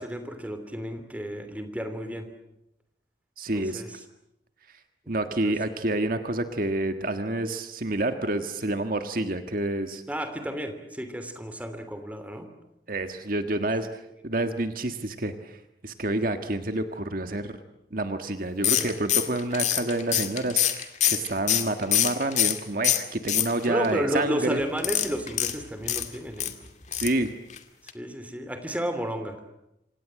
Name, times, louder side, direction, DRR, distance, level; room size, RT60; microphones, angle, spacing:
voice 1, 0.0-2.3 3.5-4.0 5.4-5.5 10.1-12.5 18.7-19.0 23.7-26.5 27.8-29.4, equal, 10° right, 8 dB, 3.0 m, -32 dB
voice 2, 3.4-3.8 5.1-10.0 12.9-13.9 14.2-17.5 17.9-24.6 26.9-27.3, right 2 dB, 50° right, 7 dB, 1.6 m, -28 dB
sound 1, 18.6-22.6 22.8-23.9 24.8-26.5 26.9-27.2 27.5-27.6 27.9-28.0, left 10 dB, 40° left, 2.3 m, -25 dB
28.0 x 26.0 x 7.7 m, 0.84 s
head